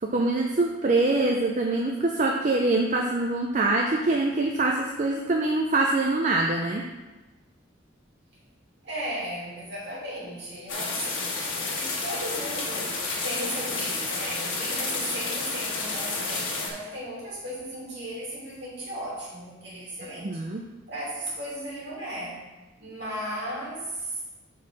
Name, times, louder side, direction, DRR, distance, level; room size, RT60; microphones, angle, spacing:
voice 1, 0.0-6.8 20.2-20.6, right 2 dB, 35° right, 1 dB, 0.5 m, -24 dB
voice 2, 8.8-20.4 20.9-22.4 22.8-24.2, right 1 dB, 55° right, -6 dB, 2.6 m, -36 dB
sound 1, 10.7-16.7, left 3 dB, 75° left, 1.4 m, -30 dB
5.6 x 4.7 x 6.0 m, 1.1 s
head